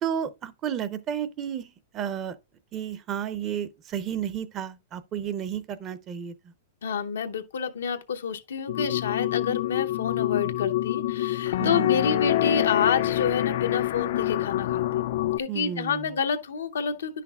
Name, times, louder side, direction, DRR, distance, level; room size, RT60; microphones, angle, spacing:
voice 1, 0.0-2.4 2.7-6.5 11.6-11.9 15.5-16.1, right 9 dB, 30° right, 0.6 m, -32 dB
voice 2, 6.8-14.8 15.4-17.2, left 6 dB, 90° left, 0.8 m, -28 dB
sound 1, 8.7-15.4, left 14 dB, 65° left, 0.3 m, -26 dB
9.9 x 5.8 x 2.3 m
hypercardioid pair, 135°, 0 cm